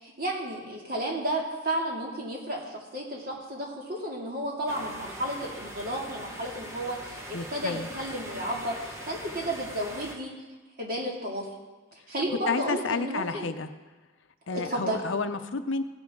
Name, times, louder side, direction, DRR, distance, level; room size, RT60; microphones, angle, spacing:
voice 1, 0.0-10.3 10.8-11.5 12.1-13.5 14.5-15.0, right 1 dB, 45° right, -2 dB, 2.4 m, -32 dB
sound 1, 4.7-10.2, equal, 15° right, 1.1 m, -42 dB
voice 2, 7.3-7.9 12.5-13.7 14.5-15.8, left 4 dB, 65° left, 9 dB, 0.6 m, -30 dB
16.0 x 10.0 x 3.7 m, 1.2 s
head